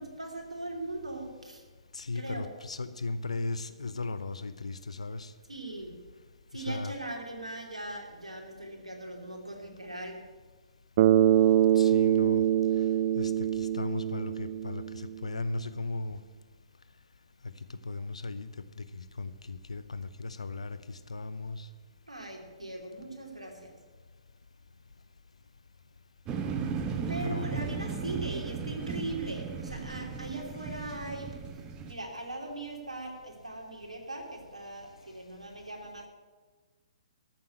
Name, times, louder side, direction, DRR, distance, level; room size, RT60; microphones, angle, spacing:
voice 1, 0.0-1.6 2.1-2.5 5.5-6.0 6.5-10.2 22.1-23.8 27.1-31.4 31.9-36.1, right 2 dB, 85° right, 1 dB, 2.9 m, -40 dB
voice 2, 1.9-5.3 6.5-6.9 11.7-12.4 13.2-16.2 17.7-21.7 27.2-27.5, left 3 dB, 75° left, 12 dB, 0.7 m, -37 dB
Bass guitar, 11.0-15.2, right 11 dB, 45° right, 0.5 m, -24 dB
sound 1, 26.3-31.9, right 5 dB, 20° right, 1.1 m, -36 dB
13.5 x 7.2 x 9.0 m, 1.3 s
figure-of-eight pair, 125°, 3 cm